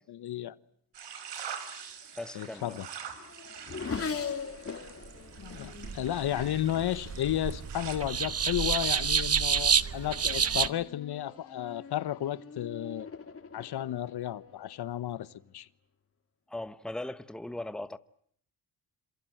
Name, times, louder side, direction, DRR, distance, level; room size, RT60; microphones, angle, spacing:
voice 1, 0.2-0.6 2.3-2.9 4.7-4.8 5.4-13.1 13.5-15.7, left 12 dB, 70° left, 1.2 m, -33 dB
sound 1, 0.9-8.0, right 8 dB, 80° right, 5.6 m, -45 dB
Race car auto racing / Accelerating revving vroom, 2.0-7.9 8.7-9.1 9.5-15.4, left 5 dB, 35° left, 3.3 m, -42 dB
voice 2, 2.1-2.8 16.5-18.0, left 1 dB, ahead, 1.1 m, -38 dB
sound 2, 5.4-10.7, right 6 dB, 35° right, 1.2 m, -29 dB
28.0 x 27.0 x 7.9 m
cardioid pair, 105°, 41 cm